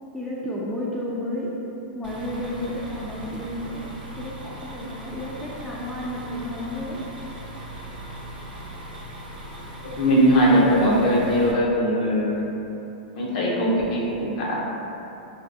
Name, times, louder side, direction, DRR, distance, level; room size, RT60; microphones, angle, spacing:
voice 1, 0.1-1.6 1.9-3.8 4.1-7.0, left 1 dB, 5° left, -6 dB, 0.4 m, -32 dB
sound 1, 2.0-11.5, right 1 dB, 85° right, 0.6 m, -39 dB
voice 2, 10.0-12.4 13.1-14.7, equal, 60° left, -4 dB, 0.8 m, -20 dB
3.4 x 2.3 x 2.6 m, 2.9 s
hypercardioid pair, 125°, 5 cm